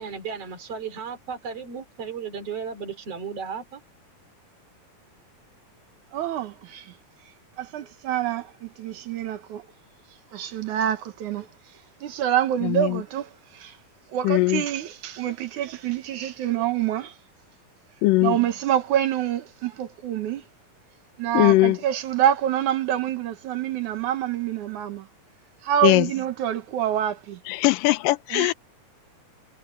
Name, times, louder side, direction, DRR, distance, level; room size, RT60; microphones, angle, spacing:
voice 1, 0.0-3.8, right 6 dB, 45° right, 4.3 m, -34 dB
voice 2, 6.1-6.9 7.6-9.6 10.3-11.5 12.0-13.8 14.1-17.1 18.2-20.4 21.2-25.1 25.6-27.4 28.3-28.5, right 11 dB, 65° right, 2.5 m, -26 dB
voice 3, 12.6-13.0 14.2-14.6 18.0-18.4 21.3-21.8 25.8-26.1 27.5-28.5, left 19 dB, 80° left, 2.3 m, -20 dB
omnidirectional pair, 4.0 m